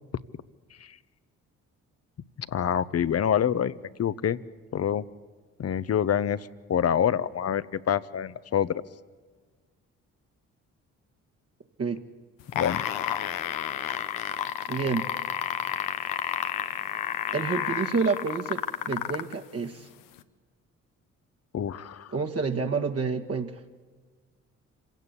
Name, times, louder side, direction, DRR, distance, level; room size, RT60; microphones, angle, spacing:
voice 1, 2.4-4.4 4.7-5.0 5.6-8.8 12.5-12.8 21.5-22.1, left 9 dB, 50° left, 16 dB, 1.0 m, -26 dB
sound 1, 12.4-19.3 20.2-20.3, left 11 dB, 85° left, 1.0 m, -30 dB
voice 2, 14.7-15.0 17.3-19.9 22.1-23.6, right 4 dB, 45° right, 3 dB, 1.9 m, -28 dB
26.5 x 17.0 x 8.4 m, 1.5 s
supercardioid pair, 55°, 33 cm